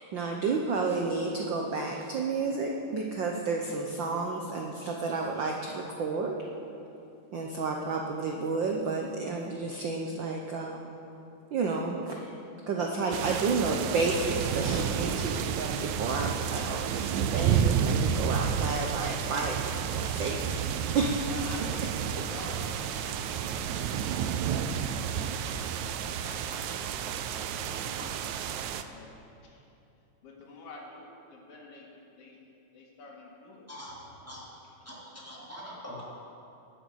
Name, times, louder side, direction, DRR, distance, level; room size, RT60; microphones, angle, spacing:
voice 1, 0.0-6.3 7.3-10.9 11.5-12.3 12.7-20.6 20.9-21.3 21.6-22.2, right 4 dB, 70° right, 1 dB, 1.1 m, -31 dB
sound 1, 13.1-28.8, right 8 dB, 85° right, 2.0 m, -31 dB
voice 2, 20.0-20.5 21.2-25.3 26.0-28.2 28.9-29.1 29.4-29.6 30.2-32.4 32.7-33.7, left 2 dB, 80° left, -2 dB, 3.4 m, -48 dB
voice 3, 33.7-34.6 34.8-36.0, equal, 5° right, -7 dB, 2.8 m, -44 dB
19.0 x 7.9 x 6.4 m, 2.8 s
omnidirectional pair, 3.3 m